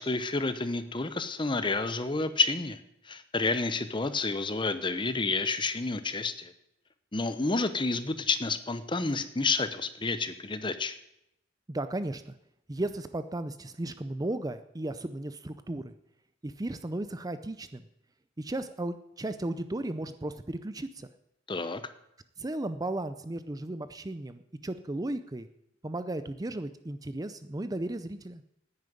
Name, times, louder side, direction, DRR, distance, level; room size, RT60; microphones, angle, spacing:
voice 1, 0.0-2.8 3.1-6.5 7.1-10.9 21.5-21.8, left 3 dB, 25° left, 11 dB, 0.9 m, -29 dB
voice 2, 11.7-12.3 12.7-15.8 16.4-17.8 18.4-21.1 22.4-25.5 25.8-28.4, right 1 dB, 20° right, 11 dB, 0.5 m, -35 dB
10.5 x 9.7 x 9.2 m, 0.79 s
head